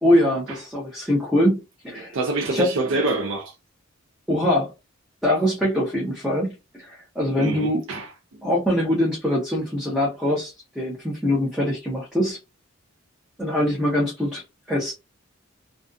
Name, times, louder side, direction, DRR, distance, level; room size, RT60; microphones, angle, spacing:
voice 1, 0.0-2.2 2.5-2.8 4.3-4.7 5.2-7.8 8.4-12.4 13.4-14.4 14.7-14.9, left 1 dB, ahead, 0.5 m, -23 dB
voice 2, 2.0-3.6 7.4-8.1, right 3 dB, 60° right, 0.4 m, -26 dB
2.4 x 2.3 x 2.4 m
head